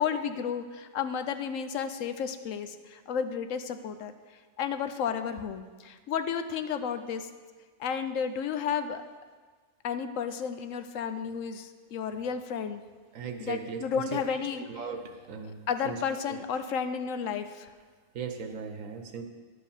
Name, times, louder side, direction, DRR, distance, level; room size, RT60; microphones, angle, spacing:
voice 1, 0.0-4.1 4.6-7.3 7.8-9.0 9.8-12.8 13.4-14.8 15.7-17.7, left 7 dB, 80° left, 9 dB, 1.0 m, -32 dB
voice 2, 13.1-14.4 14.7-15.6 15.8-16.0 16.3-16.4 18.1-19.2, right 6 dB, 85° right, 6 dB, 1.4 m, -38 dB
11.0 x 5.1 x 7.1 m, 1.4 s
omnidirectional pair, 1.3 m